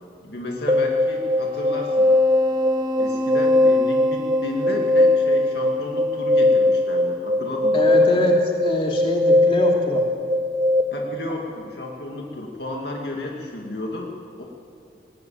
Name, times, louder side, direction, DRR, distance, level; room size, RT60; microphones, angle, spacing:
voice 1, 0.2-2.1 3.0-8.2 10.9-14.1 14.4-14.5, left 2 dB, 55° left, -1 dB, 2.2 m, -32 dB
sound 1, 0.7-10.8, left 1 dB, 20° right, 1.3 m, -19 dB
voice 2, 7.7-10.0, left 1 dB, 30° left, 0 dB, 3.0 m, -24 dB
19.5 x 19.0 x 8.9 m, 2.6 s
head